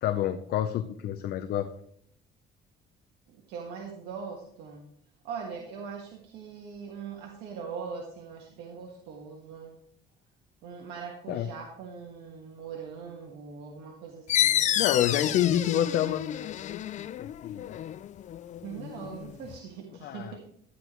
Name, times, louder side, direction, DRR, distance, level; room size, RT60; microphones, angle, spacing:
voice 1, 0.0-1.7 11.3-11.5 14.7-17.8 20.0-20.4, left 11 dB, 70° left, 7 dB, 0.7 m, -28 dB
voice 2, 3.3-4.9 5.2-9.8 10.6-14.8 18.6-20.4, right 6 dB, 90° right, 0 dB, 1.6 m, -41 dB
sound 1, 14.3-19.6, left 11 dB, 45° left, 0.4 m, -30 dB
13.0 x 10.0 x 3.1 m, 0.67 s
cardioid pair, 110°, 17 cm